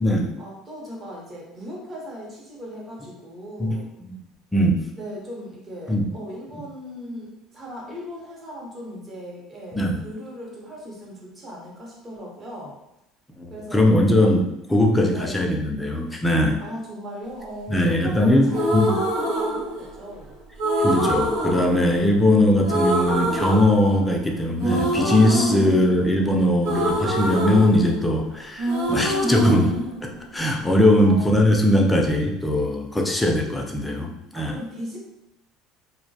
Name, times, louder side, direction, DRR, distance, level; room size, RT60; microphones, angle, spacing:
voice 1, 0.4-3.9 5.0-12.8 13.5-13.9 15.1-15.6 16.6-20.4 25.5-25.8 30.9-31.4 34.3-35.0, equal, 25° right, -3 dB, 0.7 m, -38 dB
voice 2, 3.6-4.1 4.5-4.8 5.9-6.0 9.7-10.0 13.4-16.6 17.7-19.0 20.8-29.7 30.3-34.6, left 1 dB, 10° left, 1 dB, 0.4 m, -20 dB
sound 1, 18.5-20.1 20.6-22.3 22.6-24.2 24.6-28.3 28.6-30.6, equal, 85° right, 1.0 m, -25 dB
2.2 x 2.1 x 2.6 m, 0.86 s
supercardioid pair, 115°, 0 cm